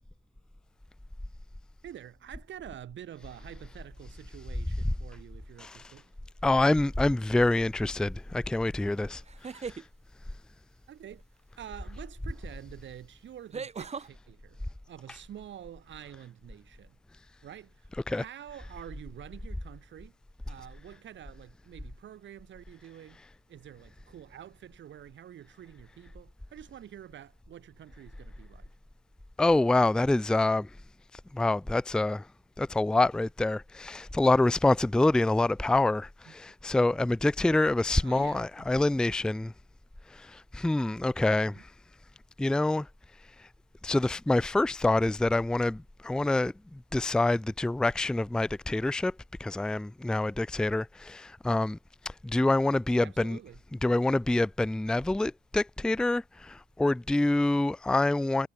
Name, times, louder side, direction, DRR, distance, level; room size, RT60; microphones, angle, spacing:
voice 1, 1.8-6.1 10.9-11.2 11.6-14.6 14.9-17.0 17.4-20.1 20.5-23.2 23.5-28.7 36.3-36.5 38.0-38.5 41.4-41.6 53.0-53.6, right 10 dB, 70° right, 7.5 m, -47 dB
voice 2, 6.4-9.2 9.6-9.8 18.1-18.2 29.4-30.7 31.3-32.3 32.6-39.5 40.1-41.7 42.4-42.9 43.8-49.1 49.4-51.8 52.2-53.4 53.8-58.5, left 2 dB, 5° left, 0.4 m, -26 dB
sound 1, 6.7-7.1 9.2-9.9 12.1-12.2 13.5-14.1, right 5 dB, 35° right, 1.6 m, -39 dB
cardioid pair, 90°, 20 cm